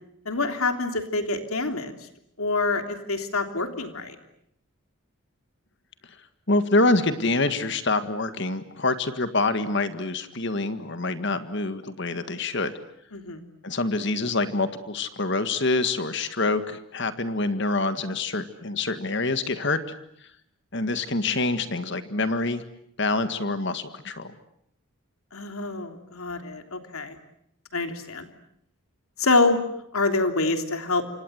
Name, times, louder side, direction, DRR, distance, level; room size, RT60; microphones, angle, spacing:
voice 1, 0.2-1.9 2.4-4.1 13.1-13.4 25.3-27.2 27.7-28.3 29.2-29.6 29.9-31.0, left 3 dB, 85° left, 6 dB, 3.3 m, -26 dB
voice 2, 6.5-12.7 13.6-19.8 20.7-22.6 23.0-24.3, left 2 dB, 55° left, 10 dB, 1.8 m, -26 dB
28.5 x 26.0 x 8.0 m, 0.73 s
head